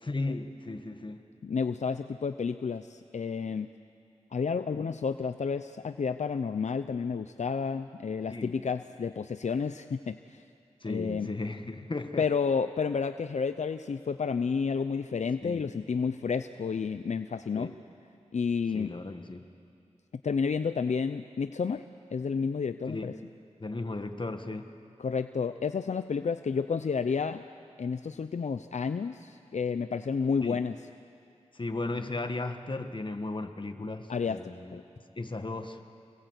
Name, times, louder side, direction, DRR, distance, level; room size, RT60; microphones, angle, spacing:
voice 1, 0.0-1.2 8.3-8.6 10.8-12.3 15.4-15.8 17.5-17.8 18.7-19.5 22.9-23.1 23.6-24.7 30.4-30.6 31.5-34.8 35.1-35.8, left 2 dB, 40° left, 7 dB, 1.6 m, -36 dB
voice 2, 1.4-3.7 4.3-10.4 10.9-11.3 12.2-17.7 18.3-18.9 20.2-21.8 22.1-23.1 25.0-27.4 27.8-30.8 34.1-34.4 34.7-34.8, left 5 dB, 70° left, 10 dB, 0.6 m, -30 dB
27.0 x 20.5 x 8.2 m, 2.5 s
wide cardioid pair, 55°, 12 cm